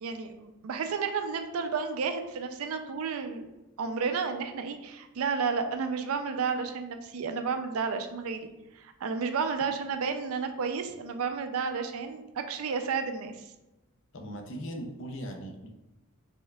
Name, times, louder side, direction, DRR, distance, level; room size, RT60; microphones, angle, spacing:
voice 1, 0.0-3.5 3.8-8.5 8.8-13.4, right 5 dB, 80° right, 7 dB, 0.4 m, -32 dB
voice 2, 14.1-15.7, equal, 60° left, 4 dB, 0.5 m, -39 dB
4.4 x 3.2 x 2.3 m, 0.99 s
head